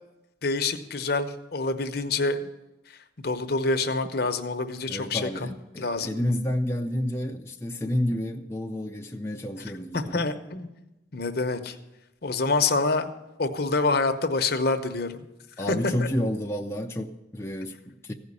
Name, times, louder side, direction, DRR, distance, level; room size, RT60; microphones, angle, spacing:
voice 1, 0.4-2.4 3.2-5.5 5.8-6.1 9.9-10.7 11.1-11.8 12.2-13.1 13.4-15.3 15.7-16.1, left 3 dB, 55° left, 7 dB, 0.9 m, -26 dB
voice 2, 4.9-10.2 15.6-18.1, left 1 dB, 15° left, 1 dB, 0.5 m, -30 dB
15.5 x 5.2 x 9.7 m, 0.99 s
head